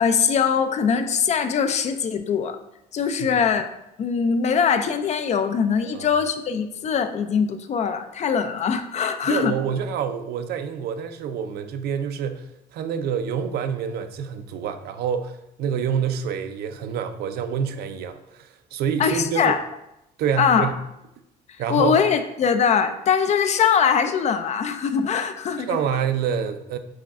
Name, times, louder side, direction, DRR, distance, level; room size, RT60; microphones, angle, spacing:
voice 1, 0.0-2.6 2.9-3.7 4.0-9.6 19.0-19.6 20.4-20.7 21.7-25.8, left 6 dB, 40° left, 9 dB, 0.4 m, -22 dB
voice 2, 9.2-19.6 20.2-20.7 21.6-22.0 25.6-26.8, right 7 dB, 70° right, 9 dB, 0.5 m, -27 dB
6.1 x 2.3 x 3.6 m, 0.85 s
cardioid pair, 110°, 17 cm